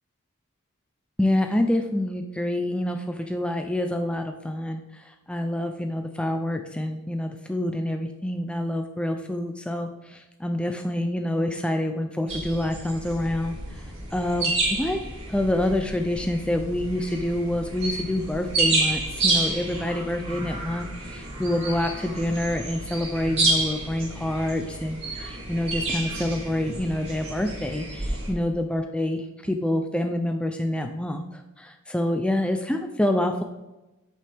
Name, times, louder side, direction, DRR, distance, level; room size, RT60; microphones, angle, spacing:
voice 1, 1.2-13.8 14.1-33.4, left 1 dB, 5° left, 5 dB, 0.5 m, -27 dB
sound 1, 12.3-28.3, right 2 dB, 30° right, 3.4 m, -30 dB
10.5 x 8.5 x 3.5 m, 1.0 s
head